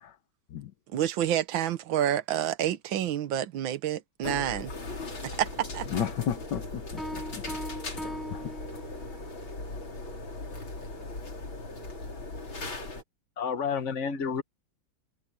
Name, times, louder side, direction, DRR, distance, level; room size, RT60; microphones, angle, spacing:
voice 1, 0.9-4.7 5.4-5.9, right 11 dB, 80° right, 1.8 m, -28 dB
sound 1, 4.2-13.0, left 2 dB, 85° left, 5.0 m, -38 dB
voice 2, 5.9-6.8 7.1-7.4 8.0-8.5, left 9 dB, 65° left, 1.5 m, -33 dB
sound 2, 7.0-9.4, equal, ahead, 7.8 m, -40 dB
voice 3, 13.4-14.4, left 6 dB, 40° left, 1.4 m, -30 dB
omnidirectional pair, 2.1 m